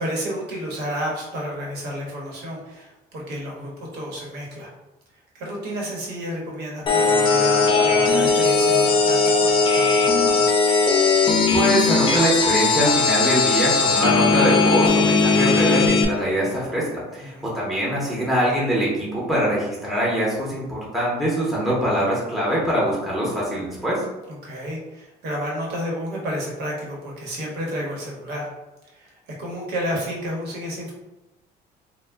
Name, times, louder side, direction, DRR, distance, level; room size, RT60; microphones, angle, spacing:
voice 1, 0.0-4.7 5.3-10.6 17.1-17.5 24.3-28.5 28.8-30.9, equal, 75° right, -2 dB, 1.0 m, -31 dB
sound 1, 6.9-16.0, left 4 dB, 30° left, 0.4 m, -18 dB
voice 2, 11.5-24.0, equal, ahead, -6 dB, 0.7 m, -23 dB
2.2 x 2.2 x 3.4 m, 1.0 s
cardioid pair, 110°, 17 cm